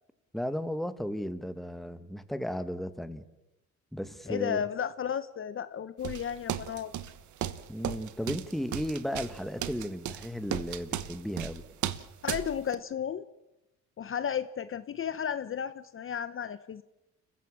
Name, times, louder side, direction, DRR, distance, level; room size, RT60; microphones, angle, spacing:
voice 1, 0.3-3.2 3.9-4.6 7.7-11.6, equal, ahead, 11 dB, 1.7 m, -35 dB
voice 2, 4.3-6.9 12.2-13.3 14.0-16.8, left 8 dB, 45° left, 14 dB, 0.8 m, -33 dB
sound 1, 6.0-12.8, right 11 dB, 75° right, 1.3 m, -35 dB
29.0 x 15.0 x 7.4 m, 0.96 s
cardioid pair, 90°, 30 cm